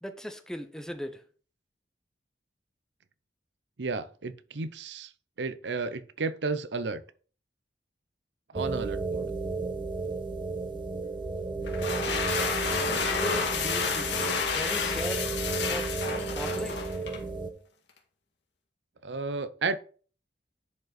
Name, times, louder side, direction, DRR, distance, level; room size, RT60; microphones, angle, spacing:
voice 1, 0.0-1.2 13.1-14.2 14.5-15.3 15.7-15.9 16.2-16.8, equal, 5° left, 0.8 m, -37 dB
voice 2, 3.8-5.1 5.4-7.0 8.5-9.3 19.0-19.8, right 4 dB, 90° right, 0.7 m, -32 dB
sound 1, 8.5-17.5, right 3 dB, 30° right, 1.0 m, -33 dB
sound 2, 11.6-17.2, left 5 dB, 85° left, 2.0 m, -30 dB
10.5 x 5.3 x 4.1 m
head